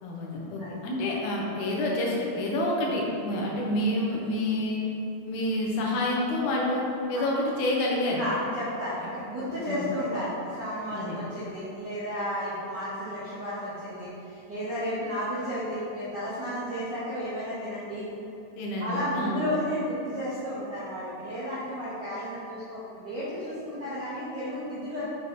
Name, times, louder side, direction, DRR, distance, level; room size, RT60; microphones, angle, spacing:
voice 1, 0.0-4.8 5.3-6.8 7.1-8.2 9.0-9.1 9.7-9.8 10.9-11.2 18.6-19.5, left 1 dB, 80° left, -3 dB, 2.4 m, -28 dB
voice 2, 8.2-18.1 18.8-25.0, equal, 75° right, -11 dB, 1.0 m, -33 dB
6.3 x 3.7 x 4.2 m, 2.8 s
omnidirectional pair, 3.5 m